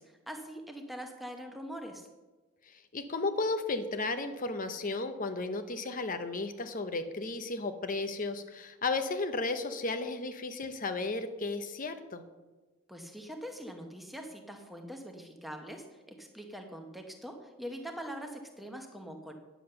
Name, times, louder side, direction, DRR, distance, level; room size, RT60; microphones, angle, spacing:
voice 1, 0.0-2.1 12.9-19.3, equal, ahead, 3 dB, 1.0 m, -43 dB
voice 2, 2.7-12.2, left 3 dB, 40° left, 9 dB, 0.8 m, -34 dB
10.0 x 7.1 x 6.9 m, 1.2 s
head